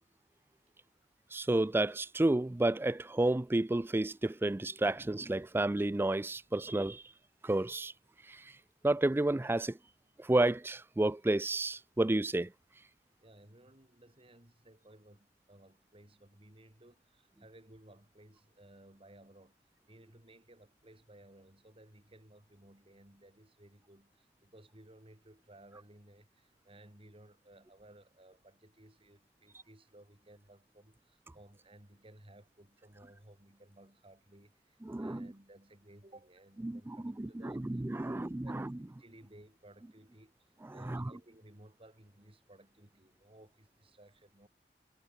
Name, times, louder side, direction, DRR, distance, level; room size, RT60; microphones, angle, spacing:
voice 1, 1.3-7.0 7.4-7.9 8.3-8.4 8.8-9.8 10.2-12.5 34.8-35.3 36.6-38.8 40.7-41.1, right 2 dB, 15° right, 0.4 m, -31 dB
voice 2, 13.2-19.6 19.9-37.6 38.0-40.3 40.7-44.5, right 1 dB, 30° right, 3.5 m, -58 dB
head